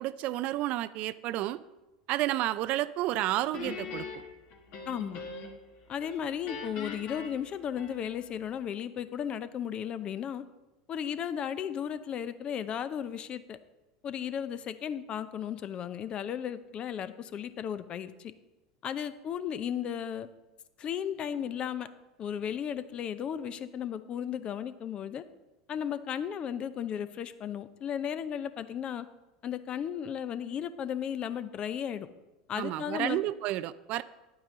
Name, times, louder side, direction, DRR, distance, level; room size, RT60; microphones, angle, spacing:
voice 1, 0.0-1.6 2.1-4.1 32.6-34.0, right 15 dB, 50° right, 16 dB, 0.4 m, -31 dB
Guitar, 3.5-5.7 6.0-8.3, left 5 dB, 55° left, 1.8 m, -41 dB
voice 2, 4.9-5.2 5.9-10.4 10.9-13.6 14.0-18.3 18.8-20.3 20.8-21.9 22.2-25.2 25.7-29.1 29.4-32.1 32.5-33.2, left 9 dB, 40° left, 13 dB, 0.6 m, -35 dB
10.0 x 8.8 x 3.8 m, 1.0 s
hypercardioid pair, 80°, 3 cm